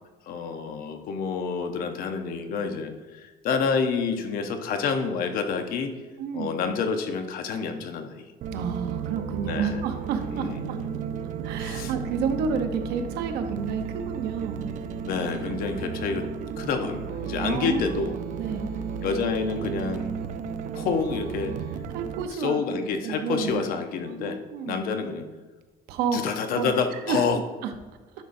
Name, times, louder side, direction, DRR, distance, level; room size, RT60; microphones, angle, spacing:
voice 1, 0.2-5.9 6.3-8.3 9.4-9.8 10.3-10.6 11.6-11.9 15.0-16.3 16.6-18.1 19.0-20.1 20.7-21.6 22.3-24.4 24.7-25.3 26.1-27.4, left 5 dB, 60° left, 7 dB, 0.8 m, -28 dB
voice 2, 6.2-6.5 8.5-10.8 11.4-14.7 17.4-17.9 18.4-18.7 21.9-22.8 23.0-23.6 24.1-24.8 25.9-26.2 26.5-27.2 27.6-27.7, right 6 dB, 75° right, 7 dB, 0.8 m, -30 dB
sound 1, 8.4-22.2, right 6 dB, 50° right, 0.4 m, -33 dB
10.5 x 5.4 x 2.6 m, 1.3 s
cardioid pair, 160°, 17 cm